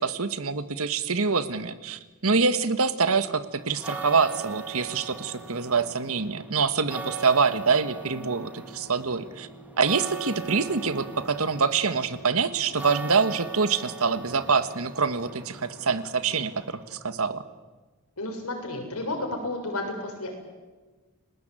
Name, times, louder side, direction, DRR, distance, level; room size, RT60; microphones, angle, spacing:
voice 1, 0.0-9.5 9.8-17.4, right 5 dB, 75° right, 12 dB, 1.5 m, -25 dB
sound 1, 3.6-17.1, right 4 dB, 5° right, 2.3 m, -40 dB
voice 2, 18.2-20.3, left 2 dB, 90° left, 2 dB, 6.9 m, -32 dB
30.0 x 19.5 x 9.1 m, 1.3 s
head